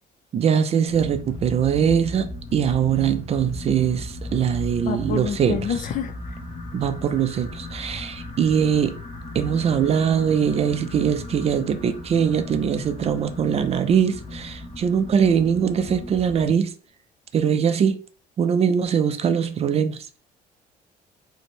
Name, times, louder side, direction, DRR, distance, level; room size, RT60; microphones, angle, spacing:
voice 1, 0.3-5.7 6.7-9.0 9.3-16.7 17.3-18.0 18.4-20.1, right 7 dB, 40° right, 0.4 m, -22 dB
sound 1, 0.9-16.5, left 2 dB, 35° left, 0.9 m, -36 dB
voice 2, 4.8-6.1, left 7 dB, 50° left, 0.5 m, -27 dB
3.0 x 2.1 x 4.1 m
cardioid pair, 110°, 17 cm